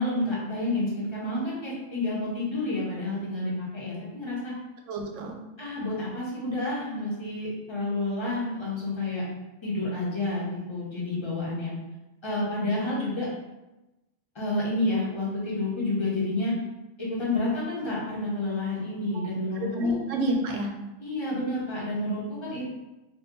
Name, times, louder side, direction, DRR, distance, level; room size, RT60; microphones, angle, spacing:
voice 1, 0.0-4.5 5.6-9.2 9.6-11.7 12.2-13.3 14.3-16.5 17.0-20.0 21.0-22.7, left 2 dB, 25° left, -6 dB, 0.8 m, -29 dB
voice 2, 4.9-5.4 19.1-19.3 19.6-20.7, equal, 80° right, 2 dB, 0.9 m, -28 dB
2.8 x 2.3 x 3.6 m, 1.0 s
omnidirectional pair, 1.3 m